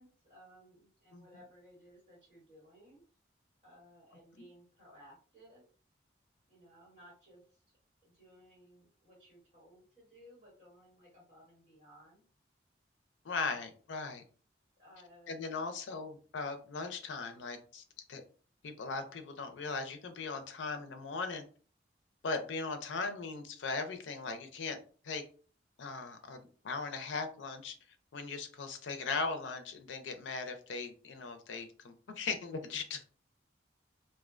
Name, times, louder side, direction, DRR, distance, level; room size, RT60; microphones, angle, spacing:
voice 1, 0.0-3.0 3.6-5.6 6.5-7.6 8.0-12.3 13.4-13.6 14.8-15.4, equal, 30° right, -8 dB, 1.5 m, -59 dB
voice 2, 13.2-14.2 15.3-17.8 18.1-18.2 18.6-21.4 22.2-25.2 25.8-26.4 26.6-27.7 28.1-33.0, left 4 dB, 90° left, 8 dB, 0.4 m, -38 dB
2.4 x 2.1 x 2.4 m, 0.41 s
head